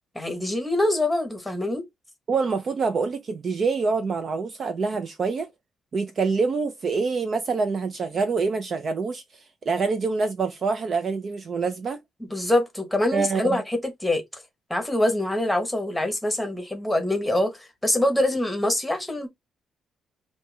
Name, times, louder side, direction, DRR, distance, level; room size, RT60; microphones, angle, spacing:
voice 1, 0.1-1.8 12.2-14.4 14.7-19.3, left 1 dB, 5° left, 1.1 m, -25 dB
voice 2, 2.3-5.5 5.9-9.2 9.7-12.0 13.1-13.6, right 4 dB, 35° right, 0.5 m, -26 dB
4.4 x 2.7 x 3.3 m
cardioid pair, 165°, 0 cm